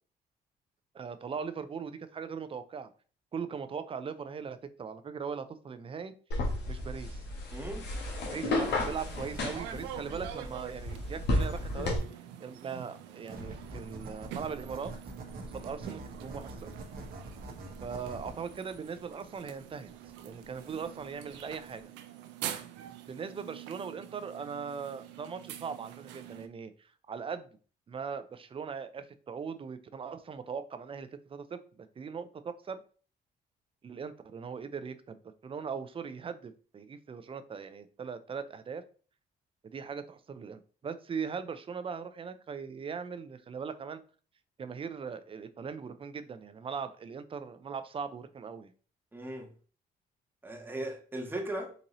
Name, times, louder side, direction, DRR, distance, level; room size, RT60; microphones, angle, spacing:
voice 1, 0.9-2.9 3.3-6.1 6.7-7.3 8.2-12.0 12.4-14.9 15.5-16.7 17.8-19.9 20.2-21.9 23.1-27.5 27.9-32.8 33.8-38.8 39.6-44.0 44.6-48.7, right 6 dB, 30° right, 0.5 m, -40 dB
sound 1, 6.3-12.0, left 1 dB, 75° left, 1.2 m, -33 dB
voice 2, 7.5-7.9 49.1-49.5 50.4-51.7, right 1 dB, 10° right, 1.0 m, -37 dB
sound 2, 8.6-26.5, right 11 dB, 85° right, 0.4 m, -46 dB
sound 3, 13.3-21.8, right 2 dB, 55° right, 1.0 m, -46 dB
3.9 x 2.6 x 3.0 m
supercardioid pair, 75°, 18 cm